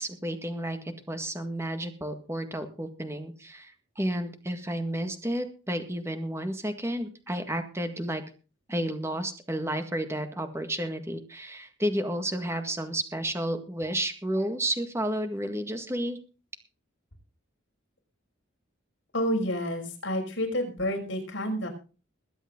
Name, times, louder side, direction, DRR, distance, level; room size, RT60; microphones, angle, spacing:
voice 1, 0.0-8.2 8.7-16.2, right 1 dB, 15° right, 7 dB, 1.8 m, -31 dB
voice 2, 19.1-21.7, equal, 60° left, 2 dB, 5.5 m, -29 dB
21.5 x 9.0 x 3.8 m, 0.34 s
head